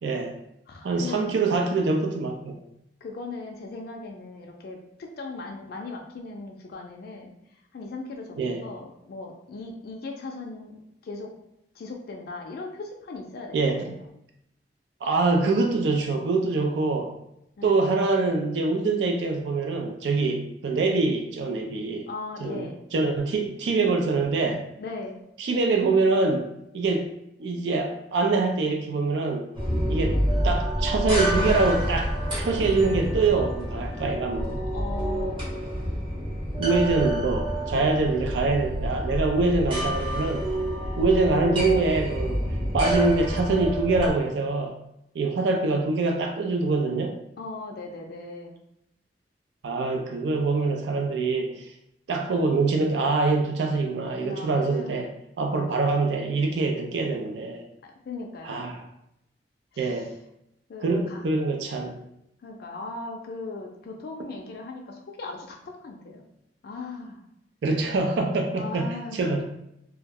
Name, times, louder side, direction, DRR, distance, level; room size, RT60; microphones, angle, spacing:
voice 1, 0.0-0.4 0.8-2.6 8.4-8.6 13.5-13.8 15.0-17.2 17.6-22.1 22.4-24.6 25.4-27.1 27.4-29.5 29.9-34.6 36.6-40.5 41.0-42.4 42.7-44.8 45.1-47.2 49.6-51.7 52.1-55.1 55.4-57.6 58.4-58.8 59.8-60.1 60.8-62.0 67.6-69.4, right 3 dB, 80° right, 3 dB, 0.4 m, -24 dB
voice 2, 0.7-1.2 3.0-7.3 7.7-10.7 11.0-11.3 11.7-14.0 17.6-17.8 22.1-22.8 24.8-25.2 34.7-35.4 47.4-48.5 54.2-55.0 57.8-58.7 59.7-60.1 60.7-61.3 62.4-66.2 66.6-67.2 68.5-69.4, left 3 dB, 60° left, 1 dB, 0.4 m, -38 dB
sound 1, 29.5-44.1, right 1 dB, 30° right, 0.8 m, -28 dB
2.3 x 2.1 x 3.4 m, 0.81 s
head